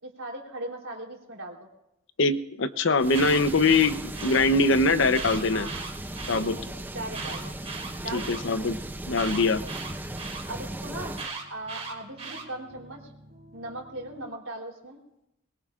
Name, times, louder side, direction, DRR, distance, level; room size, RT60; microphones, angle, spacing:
voice 1, 0.0-1.7 5.5-6.0 6.3-7.5 8.0-8.7 10.5-11.1 11.5-13.0 13.5-15.0, right 1 dB, 80° right, 0 dB, 3.5 m, -39 dB
voice 2, 2.2-5.7 6.3-6.5 8.1-8.8 9.1-9.6, left 3 dB, 65° left, 11 dB, 0.8 m, -23 dB
sound 1, 3.0-11.3, right 1 dB, 10° right, 0.5 m, -37 dB
Alarm, 3.0-4.4 5.1-6.4 7.1-8.4 9.2-10.4 11.2-12.4, right 4 dB, 35° right, 2.5 m, -37 dB
sound 2, 3.2-14.3, right 1 dB, 55° right, 7.6 m, -52 dB
22.0 x 21.5 x 2.5 m, 0.86 s
head